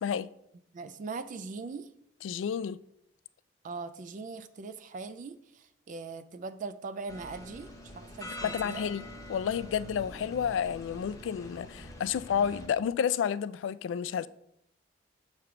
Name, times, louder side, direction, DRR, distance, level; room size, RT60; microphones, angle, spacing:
voice 1, 0.7-1.9 3.6-7.7 7.9-8.9, right 4 dB, 45° right, 0.3 m, -40 dB
voice 2, 2.2-2.8 8.4-14.3, left 8 dB, 85° left, 0.3 m, -31 dB
sound 1, 7.1-12.7, left 1 dB, 15° left, 0.8 m, -45 dB
6.8 x 3.2 x 5.9 m
head